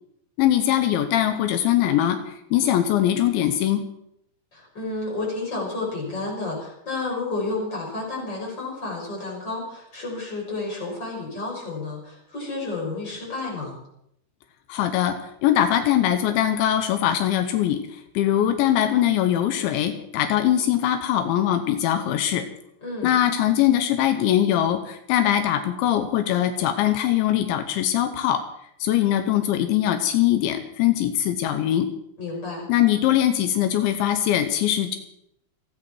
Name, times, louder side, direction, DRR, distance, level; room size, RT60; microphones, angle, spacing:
voice 1, 0.4-3.8 14.7-15.2 15.4-22.5 23.0-28.4 28.8-31.9 32.7-35.0, left 11 dB, 85° left, 8 dB, 3.5 m, -22 dB
voice 2, 4.5-13.8 22.8-23.1 32.2-32.7, left 3 dB, 25° left, -2 dB, 7.0 m, -31 dB
29.0 x 10.5 x 4.6 m, 0.74 s
omnidirectional pair, 5.2 m